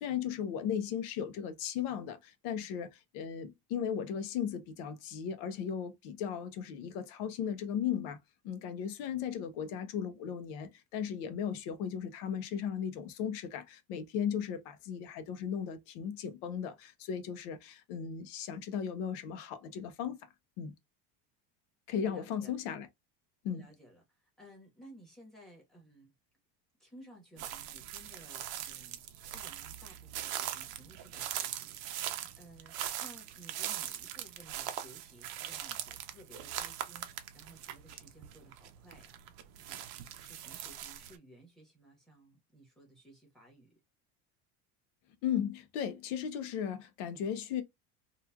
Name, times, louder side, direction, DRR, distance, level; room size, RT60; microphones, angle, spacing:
voice 1, 0.0-2.9 3.1-8.2 8.4-20.2 20.6-20.7 21.9-22.9 23.4-23.7 45.2-47.6, left 8 dB, 60° left, 0.8 m, -36 dB
voice 2, 22.0-22.6 23.5-26.1 26.8-31.8 32.1-39.2 39.6-39.8 40.1-43.7, right 1 dB, ahead, 1.2 m, -57 dB
sound 1, 27.4-41.2, right 11 dB, 60° right, 0.6 m, -41 dB
3.0 x 2.4 x 2.3 m
cardioid pair, 150°, 43 cm